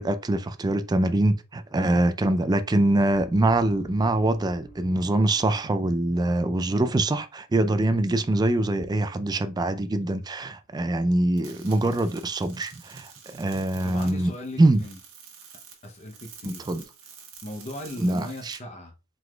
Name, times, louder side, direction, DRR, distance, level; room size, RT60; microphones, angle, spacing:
voice 1, 0.0-14.3 14.6-14.8 16.4-16.8 18.0-18.6, right 2 dB, 20° right, 0.3 m, -24 dB
sound 1, 3.1-6.5 6.8-7.1, right 1 dB, 75° left, 1.8 m, -50 dB
sound 2, 11.4-18.6, right 6 dB, 80° right, 1.3 m, -48 dB
voice 2, 13.8-15.0 15.8-16.6 17.4-18.9, left 1 dB, 30° left, 0.6 m, -38 dB
4.7 x 3.9 x 2.2 m
head